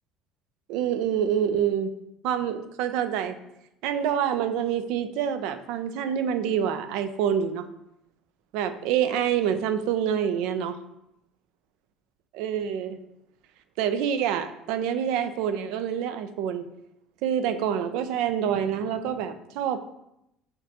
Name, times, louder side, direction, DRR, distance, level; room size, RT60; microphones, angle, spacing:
voice 1, 0.7-1.9 2.2-3.4 3.8-7.6 8.5-10.8 12.3-13.0 13.8-16.7 17.2-19.8, right 9 dB, 75° right, 10 dB, 0.3 m, -26 dB
6.3 x 2.2 x 2.7 m, 0.83 s
cardioid pair, 115°, 0 cm